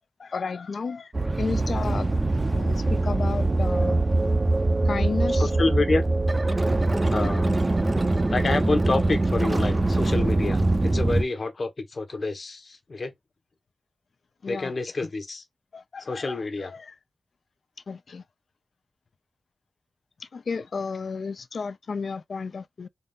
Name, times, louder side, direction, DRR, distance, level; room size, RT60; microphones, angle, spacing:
voice 1, 0.2-1.1 1.4-2.1 2.5-4.0 4.9-5.5 14.4-14.7 15.7-16.9 17.9-18.2 20.3-22.9, left 5 dB, 65° left, 0.4 m, -33 dB
sound 1, 1.1-11.2, right 2 dB, 25° right, 0.5 m, -23 dB
voice 2, 5.3-6.1 7.1-7.6 8.3-13.1 14.5-15.4 16.0-16.7, left 3 dB, 50° left, 0.9 m, -28 dB
4.0 x 2.3 x 3.4 m
wide cardioid pair, 115°, 0 cm